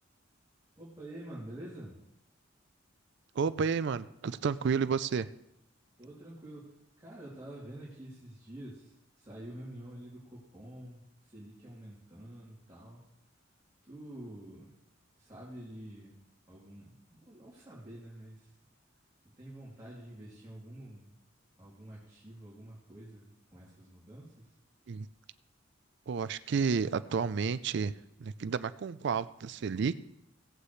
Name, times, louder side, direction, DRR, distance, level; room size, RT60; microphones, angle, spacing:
voice 1, 0.8-2.0 6.0-13.0 13.8-14.8 15.2-16.2 16.5-18.5 19.4-21.2 21.5-24.5, right 1 dB, 20° right, -9 dB, 3.0 m, -48 dB
voice 2, 3.4-5.3 24.9-25.1 26.1-27.9 28.2-30.0, right 5 dB, 60° right, 15 dB, 0.4 m, -31 dB
17.5 x 8.2 x 3.2 m, 0.82 s
head